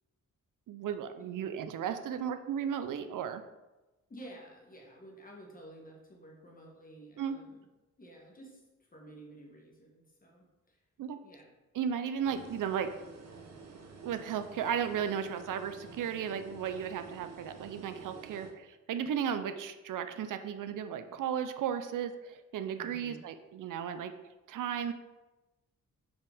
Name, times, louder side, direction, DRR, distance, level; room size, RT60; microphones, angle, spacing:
voice 1, 0.7-3.4 7.2-7.4 11.0-11.2 11.7-12.9 14.0-24.1 24.5-24.9, right 8 dB, 90° right, 9 dB, 0.6 m, -35 dB
voice 2, 4.1-7.7 8.0-10.8 11.2-11.5 22.7-23.2, right 1 dB, 25° left, -1 dB, 1.4 m, -52 dB
sound 1, 12.2-18.5, right 4 dB, 55° right, 1.0 m, -50 dB
7.1 x 5.1 x 3.5 m, 1.1 s
wide cardioid pair, 140°, 31 cm